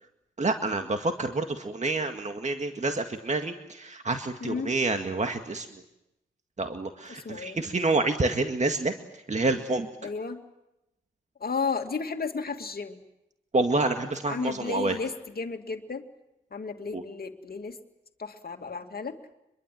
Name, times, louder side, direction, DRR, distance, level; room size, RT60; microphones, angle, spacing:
voice 1, 0.4-5.7 6.6-8.9 9.3-9.9 13.5-15.0 16.9-17.0, right 2 dB, 35° right, 6 dB, 2.0 m, -28 dB
voice 2, 4.4-4.7 7.1-7.6 10.0-10.4 11.4-13.0 14.3-16.0 16.5-17.8 18.2-19.2, left 4 dB, 45° left, 6 dB, 2.4 m, -33 dB
26.5 x 22.0 x 7.7 m, 0.91 s
supercardioid pair, 40°, 21 cm